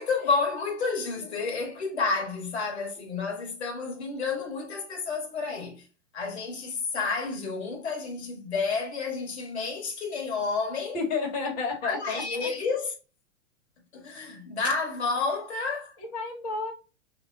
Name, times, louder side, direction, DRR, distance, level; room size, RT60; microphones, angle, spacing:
voice 1, 0.0-5.8 6.1-11.0 11.8-12.9 13.9-15.9, left 4 dB, 60° left, 1.5 m, -30 dB
voice 2, 10.9-12.5 16.0-16.7, left 4 dB, 30° left, 1.5 m, -32 dB
5.3 x 2.2 x 3.8 m
figure-of-eight pair, 110°, 38 cm